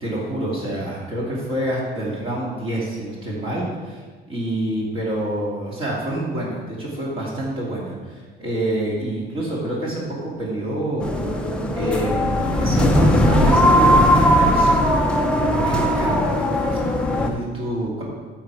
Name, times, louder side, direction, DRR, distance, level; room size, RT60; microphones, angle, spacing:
voice 1, 0.0-4.0 4.3-11.5 11.7-14.9 15.4-18.0, right 1 dB, 30° right, -5 dB, 2.2 m, -27 dB
sound 1, 11.0-17.3, equal, 5° left, 0.7 m, -18 dB
13.0 x 4.6 x 4.8 m, 1.4 s
cardioid pair, 160°, 17 cm